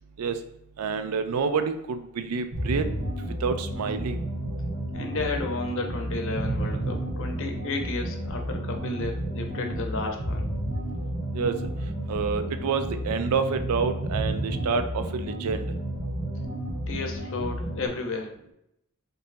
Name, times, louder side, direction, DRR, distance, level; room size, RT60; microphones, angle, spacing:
voice 1, 0.8-2.9 3.4-4.2 11.3-11.6 12.1-15.7, right 5 dB, 85° right, 9 dB, 0.4 m, -28 dB
sound 1, 2.5-17.9, right 1 dB, 60° right, 1.2 m, -31 dB
voice 2, 4.9-10.5 16.9-18.5, left 3 dB, 60° left, 3 dB, 0.7 m, -32 dB
5.3 x 2.7 x 2.6 m, 0.81 s
head